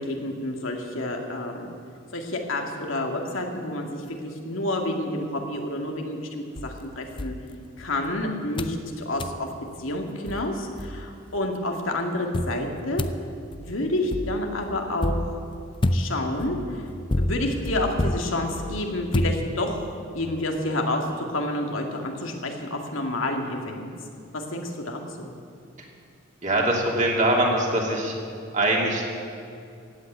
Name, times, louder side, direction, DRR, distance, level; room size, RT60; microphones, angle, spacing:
voice 1, 0.0-1.7 2.1-7.4 7.8-9.5 9.8-13.0 13.5-15.4 15.9-16.9 17.2-19.9 20.1-23.9 24.3-25.3, left 1 dB, 80° left, 2 dB, 2.1 m, -29 dB
sound 1, 6.6-8.1 8.6-8.8 9.2-9.4 10.0-10.1 10.3-11.4 12.3-19.9, left 1 dB, 25° left, 0.5 m, -30 dB
voice 2, 26.4-28.1 28.5-29.2, right 1 dB, 40° right, -1 dB, 2.8 m, -23 dB
15.5 x 8.9 x 9.3 m, 2.5 s
head